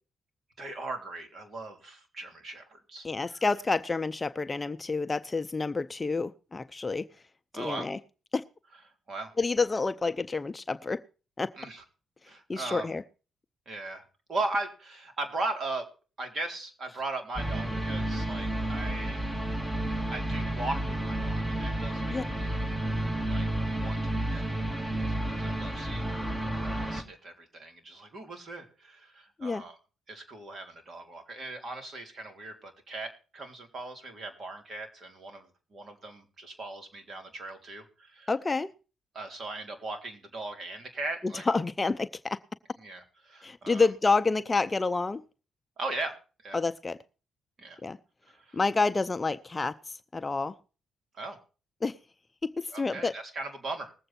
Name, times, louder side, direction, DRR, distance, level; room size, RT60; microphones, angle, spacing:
voice 1, 0.6-3.4 7.5-7.9 9.1-9.3 11.6-11.8 12.3-12.9 13.6-14.0 14.3-15.9 16.2-19.2 20.1-22.6 23.3-23.5 23.8-29.8 30.1-38.3 39.1-41.5 42.8-43.9 45.8-46.2 46.4-46.6 47.6-47.8 48.3-48.6 51.1-51.4 52.7-53.9, right 2 dB, 45° right, 5 dB, 3.4 m, -38 dB
voice 2, 3.0-7.0 7.5-8.0 8.3-8.4 9.4-11.0 11.4-11.5 12.5-13.0 22.1-22.3 29.4-29.6 38.3-38.7 41.2-42.4 43.4-45.2 46.5-47.0 47.8-48.0 48.5-50.5 51.8-52.0 52.4-53.2, left 3 dB, 25° left, 11 dB, 0.6 m, -29 dB
sound 1, 17.4-27.0, right 1 dB, 15° right, 2.2 m, -31 dB
20.0 x 7.8 x 4.3 m, 0.35 s
cardioid pair, 90°, 0 cm